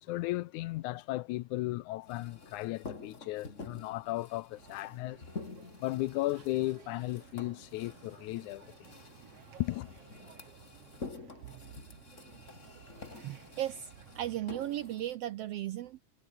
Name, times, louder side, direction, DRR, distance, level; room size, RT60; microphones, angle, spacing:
voice 1, 0.0-5.2 5.8-8.9 9.6-9.9, left 18 dB, 85° left, 2.0 m, -35 dB
sound 1, 2.1-15.2, left 3 dB, 25° left, 2.8 m, -49 dB
sound 2, 4.5-14.6, right 8 dB, 55° right, 2.6 m, -57 dB
voice 2, 13.2-13.9 14.1-16.0, right 13 dB, 75° right, 1.4 m, -36 dB
omnidirectional pair, 3.5 m